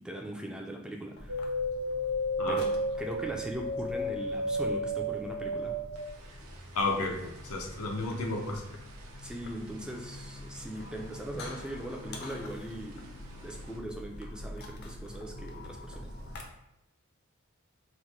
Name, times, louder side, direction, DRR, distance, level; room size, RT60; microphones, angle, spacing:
voice 1, 0.0-1.5 2.5-2.7 3.0-5.8 9.2-16.3, right 1 dB, 5° right, 0 dB, 0.3 m, -40 dB
sound 1, 1.2-16.4, left 1 dB, 50° left, 0.5 m, -46 dB
sound 2, 1.3-10.7 10.9-11.8 12.2-13.1 13.5-13.6, equal, 80° right, 0.5 m, -34 dB
voice 2, 6.7-8.6, left 2 dB, 90° left, 2 dB, 0.6 m, -32 dB
3.0 x 2.1 x 4.1 m, 0.85 s
head